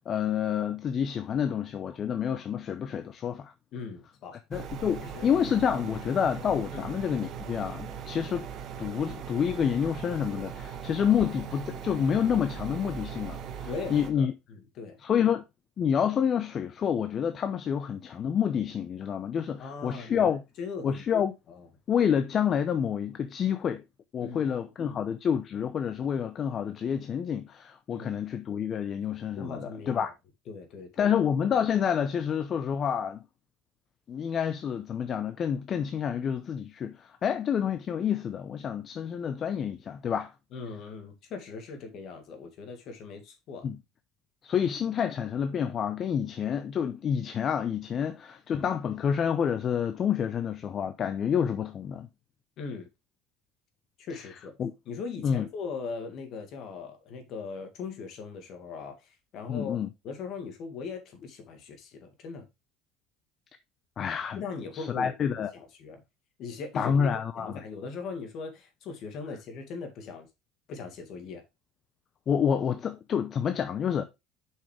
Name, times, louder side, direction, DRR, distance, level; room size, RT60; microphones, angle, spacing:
voice 1, 0.1-3.5 4.5-8.5 8.8-14.3 15.0-15.4 15.8-20.4 20.8-21.3 21.9-23.8 24.1-30.1 31.0-33.2 34.1-40.3 43.6-43.8 44.4-52.1 54.6-54.7 55.2-55.5 59.5-59.9 64.0-64.4 64.7-65.5 66.7-67.6 72.3-74.1, left 8 dB, 40° left, 0.6 m, -28 dB
voice 2, 3.7-4.4 5.0-5.3 6.7-6.9 13.6-15.0 19.6-21.0 21.5-21.7 24.2-24.5 24.8-25.0 27.9-28.3 29.4-30.1 30.5-31.1 40.5-43.7 52.6-52.9 54.0-54.5 54.9-62.4 64.4-66.0 66.4-67.0 67.3-70.3 70.7-71.4, left 5 dB, 55° left, 2.1 m, -40 dB
sound 1, 4.5-14.1, right 7 dB, 50° right, 1.2 m, -39 dB
7.1 x 5.6 x 3.2 m
supercardioid pair, 105°, 0 cm